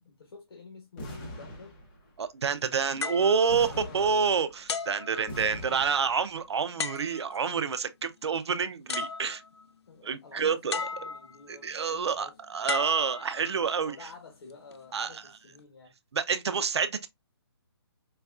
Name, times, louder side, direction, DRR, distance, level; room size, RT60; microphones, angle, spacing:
voice 1, 0.0-1.8 3.7-4.3 5.4-6.0 9.9-12.4 13.8-15.9, left 4 dB, 65° left, 0.9 m, -50 dB
sound 1, 1.0-2.2 3.5-4.8 5.3-6.4, left 1 dB, 20° left, 0.8 m, -42 dB
voice 2, 2.2-9.4 10.0-10.8 11.5-14.1 14.9-15.2 16.1-17.1, right 6 dB, 85° right, 0.5 m, -28 dB
sound 2, 3.0-4.2 4.7-5.8 6.8-7.5 8.5-8.6 8.9-9.7 10.7-11.5 12.7-13.8 14.5-14.8, left 5 dB, 80° left, 0.5 m, -36 dB
4.6 x 2.2 x 2.3 m
hypercardioid pair, 165°, 14 cm